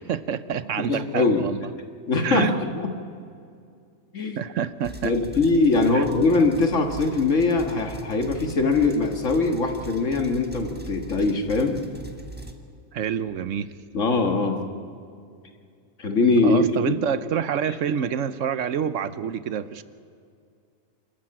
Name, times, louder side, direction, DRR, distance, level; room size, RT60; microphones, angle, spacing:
voice 1, 0.1-1.7 2.2-2.6 4.4-5.1 5.9-6.0 12.9-13.7 16.4-19.8, right 8 dB, 75° right, 14 dB, 1.1 m, -27 dB
voice 2, 0.8-1.5 2.1-2.9 4.1-4.4 5.0-11.8 13.9-14.6 16.0-16.9 17.6-17.8, left 3 dB, 75° left, 4 dB, 2.1 m, -22 dB
sound 1, 4.8-12.5, right 1 dB, 10° right, 1.4 m, -41 dB
26.0 x 14.0 x 8.8 m, 2.3 s
omnidirectional pair, 1.3 m